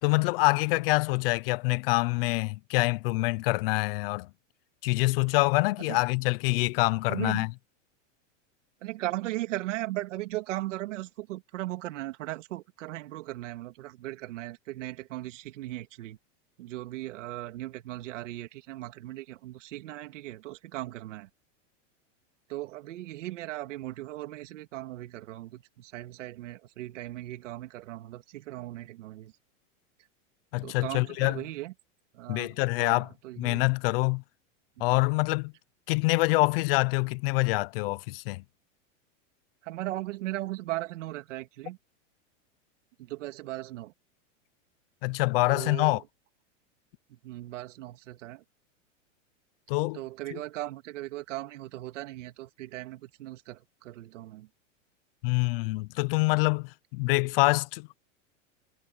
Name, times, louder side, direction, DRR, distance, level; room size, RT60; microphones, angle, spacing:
voice 1, 0.0-4.3 4.8-7.5 30.5-31.4 32.3-33.1 33.4-34.2 34.8-35.5 35.9-38.4 45.0-46.0 49.7-50.0 50.3-50.4 55.2-58.0, left 24 dB, 45° left, 0.8 m, -26 dB
voice 2, 7.1-7.4 8.8-16.2 16.6-21.3 22.5-29.3 30.6-31.7 32.1-33.6 34.8-34.9 39.6-41.8 43.0-43.9 45.5-46.0 47.2-48.4 49.9-54.5, right 16 dB, 70° right, 3.1 m, -38 dB
supercardioid pair, 155°, 38 cm